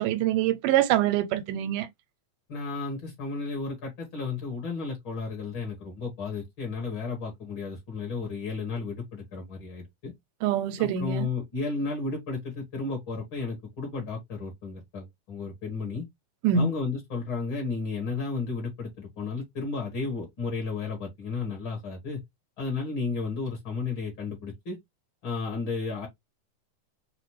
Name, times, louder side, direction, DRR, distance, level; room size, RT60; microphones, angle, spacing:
voice 1, 0.0-1.9 10.4-11.3 16.4-16.7, right 10 dB, 90° right, 2.2 m, -24 dB
voice 2, 2.5-10.1 10.8-16.1 16.5-22.2 22.6-24.8 25.2-26.1, left 4 dB, 45° left, 2.0 m, -33 dB
5.6 x 2.6 x 3.1 m
omnidirectional pair, 3.7 m